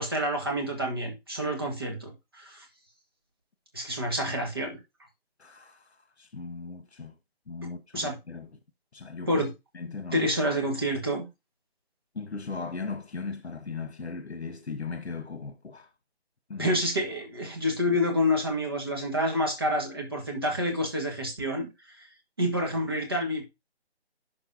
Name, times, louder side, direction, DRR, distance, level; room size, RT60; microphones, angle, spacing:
voice 1, 0.0-2.7 3.7-4.8 7.9-8.2 9.3-9.5 10.1-11.2 16.6-21.7 22.0-22.1 22.4-23.4, equal, 20° right, 1.4 m, -28 dB
voice 2, 5.4-7.1 7.5-8.5 8.9-9.4 9.7-10.3 12.1-15.9 16.5-16.7 17.9-18.0, left 4 dB, 85° left, 1.2 m, -38 dB
11.5 x 4.0 x 2.6 m
figure-of-eight pair, 180°, 32 cm